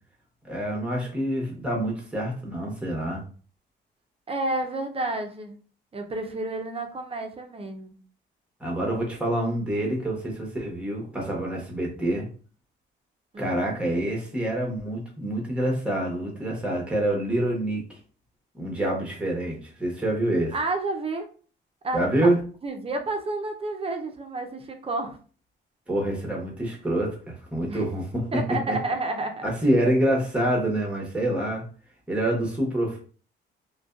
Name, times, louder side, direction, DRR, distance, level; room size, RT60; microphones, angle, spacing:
voice 1, 0.4-3.2 8.6-12.3 13.4-18.0 18.5-20.5 21.9-22.4 25.9-28.3 28.7-28.8 29.4-31.6 32.1-33.0, right 1 dB, 5° right, -2 dB, 0.9 m, -26 dB
voice 2, 4.3-5.6 5.9-8.0 13.3-13.6 20.5-21.3 21.8-22.3 22.6-25.2 27.7-27.8 28.3-29.5, right 2 dB, 30° right, 5 dB, 0.5 m, -30 dB
2.5 x 2.2 x 2.3 m, 0.40 s
cardioid pair, 90°, 20 cm